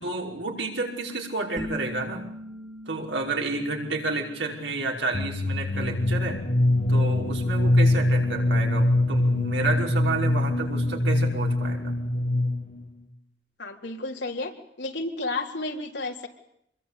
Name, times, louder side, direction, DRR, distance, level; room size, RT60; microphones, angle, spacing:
voice 1, 0.0-2.3 2.9-6.4 6.9-12.0, right 2 dB, 85° right, 1 dB, 5.5 m, -30 dB
sound 1, 1.6-7.0, left 1 dB, ahead, 1.8 m, -42 dB
sound 2, 5.1-12.8, left 1 dB, 40° left, 1.8 m, -23 dB
voice 2, 13.6-14.5 14.8-16.3, left 2 dB, 70° left, 2 dB, 3.9 m, -31 dB
26.5 x 22.0 x 8.6 m, 0.75 s
head